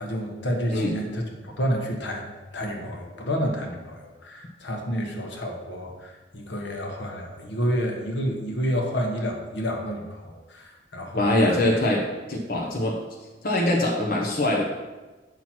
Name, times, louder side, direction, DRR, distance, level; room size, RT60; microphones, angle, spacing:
voice 1, 0.0-11.6, equal, 75° left, 2 dB, 1.3 m, -30 dB
voice 2, 11.2-12.0 12.3-13.0 13.4-14.6, left 1 dB, 50° left, -2 dB, 1.0 m, -22 dB
8.0 x 6.0 x 4.4 m, 1.2 s
head